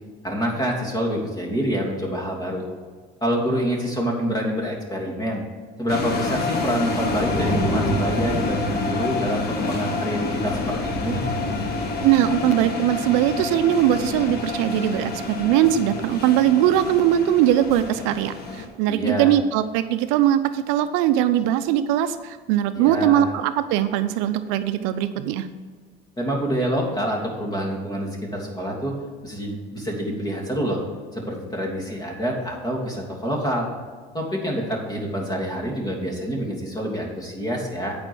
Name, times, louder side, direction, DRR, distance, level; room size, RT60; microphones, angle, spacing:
voice 1, 0.2-2.6 3.2-5.4 5.8-11.2 18.9-19.3 22.7-23.3 26.2-28.9 29.2-30.8 31.1-33.7 34.1-37.9, equal, 20° left, -1 dB, 2.9 m, -27 dB
sound 1, 5.9-18.7, left 3 dB, 50° left, 1.5 m, -28 dB
sound 2, 6.0-9.7 10.1-12.7, equal, 80° left, 2.6 m, -30 dB
voice 2, 12.0-25.5, right 11 dB, 75° right, 11 dB, 0.7 m, -20 dB
8.9 x 5.3 x 6.2 m, 1.5 s
supercardioid pair, 95°, 20 cm